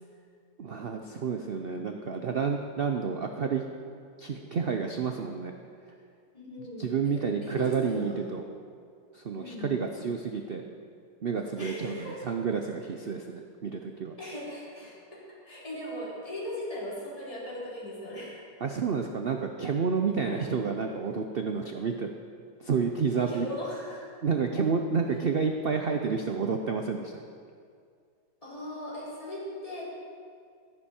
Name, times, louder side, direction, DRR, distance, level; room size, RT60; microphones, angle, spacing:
voice 1, 0.6-3.6 4.2-5.5 6.8-8.4 9.1-10.6 11.2-14.2 18.6-22.1 22.6-23.5 24.2-27.2, right 5 dB, 80° right, 4 dB, 0.5 m, -30 dB
voice 2, 6.3-8.3 9.4-9.8 11.6-12.2 14.2-18.4 20.2-20.5 23.3-24.1 28.4-29.8, equal, 20° left, -8 dB, 3.7 m, -39 dB
15.5 x 10.0 x 4.4 m, 2.2 s
omnidirectional pair, 1.9 m